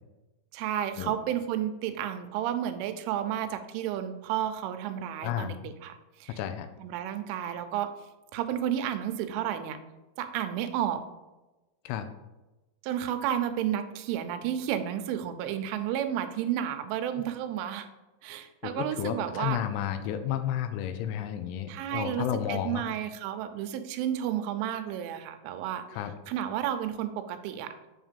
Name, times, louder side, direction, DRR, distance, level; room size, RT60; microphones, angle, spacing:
voice 1, 0.5-6.4 6.8-7.9 8.3-9.8 10.2-11.0 12.8-17.9 18.2-19.6 21.7-25.9 26.3-27.8, right 10 dB, 90° right, 8 dB, 3.1 m, -32 dB
voice 2, 5.2-5.6 6.4-6.7 11.9-12.1 18.6-22.8 25.9-26.1, left 10 dB, 85° left, 9 dB, 3.1 m, -32 dB
8.6 x 3.7 x 5.1 m, 1.1 s
omnidirectional pair, 5.5 m